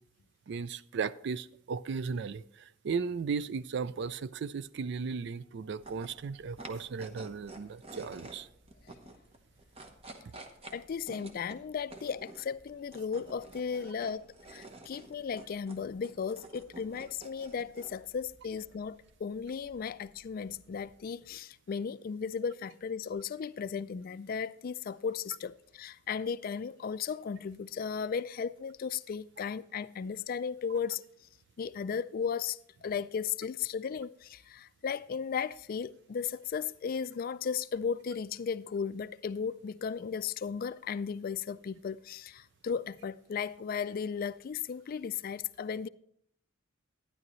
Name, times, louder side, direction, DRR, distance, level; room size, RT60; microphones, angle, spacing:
voice 1, 0.5-8.5, right 5 dB, 60° right, 0.4 m, -36 dB
sound 1, 5.7-21.1, right 2 dB, 30° right, 1.0 m, -52 dB
voice 2, 10.7-31.0 31.6-45.9, left 6 dB, 45° left, 0.3 m, -35 dB
12.5 x 10.0 x 3.1 m
head